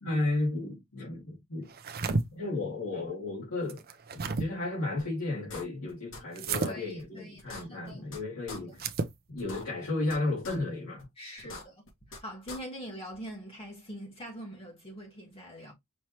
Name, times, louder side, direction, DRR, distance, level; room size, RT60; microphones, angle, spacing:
voice 1, 0.0-1.7 2.3-3.8 4.1-8.8 9.3-11.1 11.4-11.7, left 2 dB, 85° left, 2.4 m, -33 dB
sound 1, 1.7-2.2 3.7-4.5 6.3-6.7 8.7-9.1, right 3 dB, 45° right, 0.6 m, -31 dB
sound 2, 5.0-5.1 5.5-6.2 6.5-6.6 7.0-7.1 7.4-8.2 8.5-8.6 9.0-9.1 9.4-10.2 10.4-10.6 11.0-11.1 11.4-12.2 12.5-12.6, left 3 dB, 60° left, 1.9 m, -43 dB
voice 2, 6.6-8.1 11.2-11.8 12.2-15.7, equal, 25° left, 1.3 m, -43 dB
5.5 x 3.1 x 3.0 m
head